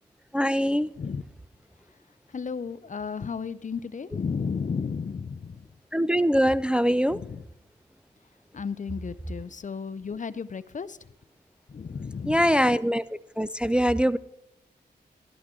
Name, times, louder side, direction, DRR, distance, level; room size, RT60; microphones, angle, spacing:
voice 1, 0.3-0.9 5.9-7.2 12.3-13.0 13.4-14.2, equal, 5° right, 14 dB, 0.4 m, -22 dB
voice 2, 2.3-5.7 7.1-7.4 8.5-11.0 11.7-12.5, left 5 dB, 45° left, 17 dB, 0.6 m, -33 dB
12.5 x 12.0 x 3.7 m, 0.82 s
cardioid pair, 45°, 19 cm